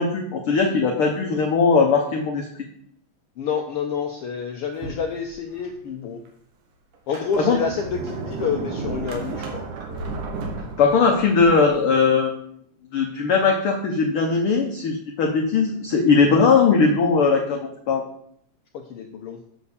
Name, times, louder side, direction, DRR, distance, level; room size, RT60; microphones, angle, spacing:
voice 1, 0.0-2.5 7.4-7.6 10.8-12.3 12.9-18.0, left 4 dB, 65° left, 2 dB, 1.4 m, -19 dB
voice 2, 3.4-6.2 7.1-10.2 18.7-19.4, left 6 dB, 85° left, 3 dB, 1.2 m, -29 dB
Sliding door, 4.8-5.7 6.3-6.4 6.9-11.8, right 3 dB, 85° right, 2.8 m, -33 dB
8.3 x 4.2 x 6.9 m, 0.66 s
omnidirectional pair, 3.5 m